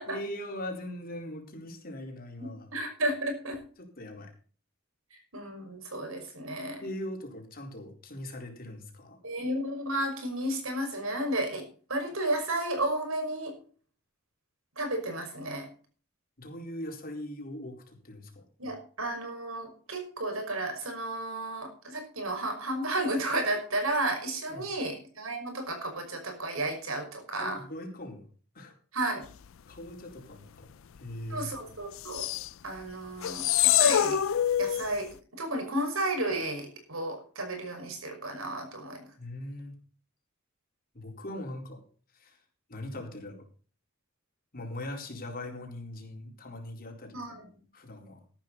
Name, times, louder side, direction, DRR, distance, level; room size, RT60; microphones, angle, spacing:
voice 1, 0.1-2.7 4.0-4.3 6.8-9.2 16.4-18.4 24.5-24.7 27.4-28.3 28.5-28.7 29.7-30.7 31.0-31.5 39.2-39.7 40.9-41.8 42.1-42.4 42.7-43.4 44.5-48.2, left 1 dB, 45° left, 2 dB, 4.3 m, -40 dB
voice 2, 2.4-3.6 5.1-6.9 9.2-13.6 14.8-15.7 18.6-27.6 28.9-29.3 31.3-32.3 32.6-34.2 34.6-39.1 47.1-47.6, right 1 dB, 80° right, 4 dB, 5.5 m, -33 dB
sound 1, 32.0-32.5 33.2-34.9, left 11 dB, 70° left, 0.5 m, -25 dB
14.0 x 11.5 x 4.1 m, 0.40 s
head